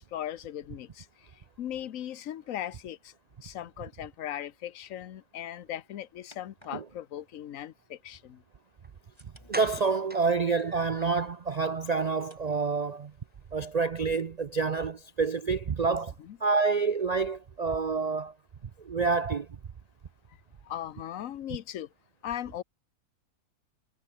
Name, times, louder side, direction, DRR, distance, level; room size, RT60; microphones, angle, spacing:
voice 1, 0.0-3.1 3.4-8.4 16.2-16.4 20.6-21.9 22.2-22.6, left 11 dB, 65° left, 1.2 m, -38 dB
sound 1, 8.6-17.7, left 1 dB, 15° left, 6.6 m, -66 dB
sound 2, 8.8-8.9 9.5-11.3 11.6-11.7 12.1-12.3 12.5-12.6, right 1 dB, 5° right, 1.1 m, -42 dB
voice 2, 9.5-13.1 13.5-16.1 16.4-18.3 18.8-19.6, right 4 dB, 60° right, 0.4 m, -28 dB
omnidirectional pair, 1.5 m